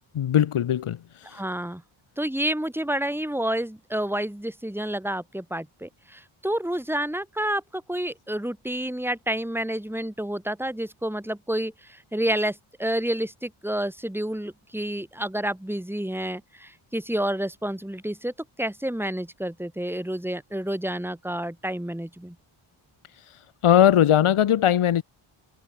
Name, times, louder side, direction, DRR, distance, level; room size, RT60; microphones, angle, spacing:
voice 1, 0.1-1.4 23.6-25.0, left 10 dB, 80° left, 1.9 m, -20 dB
voice 2, 1.3-1.8 2.2-18.3 18.6-22.4, right 1 dB, 5° right, 7.0 m, -29 dB
cardioid pair, 85°, 50 cm